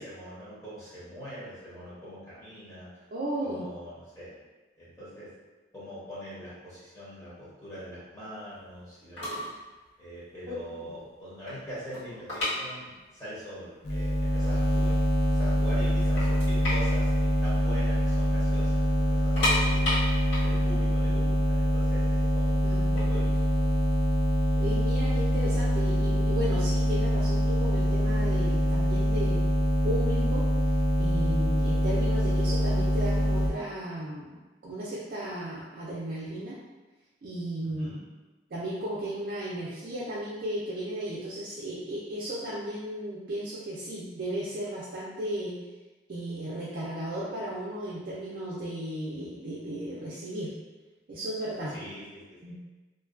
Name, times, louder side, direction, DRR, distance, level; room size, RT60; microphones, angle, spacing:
voice 1, 0.0-3.0 3.4-4.3 4.8-5.3 5.7-9.3 10.0-14.9 15.2-23.9 37.6-38.0 51.7-52.5, equal, 15° left, -11 dB, 0.8 m, -43 dB
voice 2, 3.1-3.6 10.5-10.9 22.6-22.9 24.6-29.4 29.8-30.5 31.0-36.6 37.2-38.0 38.5-45.5 46.1-50.5 51.1-51.7 52.4-52.5, right 1 dB, 50° right, -7 dB, 0.4 m, -35 dB
sound 1, 8.9-9.0 9.2-9.6 9.9-10.1 10.6-10.7 11.0-13.3 13.5-13.6 14.3-14.4 14.7-15.4 15.8-15.9 16.2-18.2 18.4-18.6 19.1-22.0 22.8-24.5, left 1 dB, 70° left, 1.4 m, -32 dB
sound 2, 13.8-33.5, equal, 55° left, 0.4 m, -25 dB
2.5 x 2.2 x 2.4 m, 1.2 s
head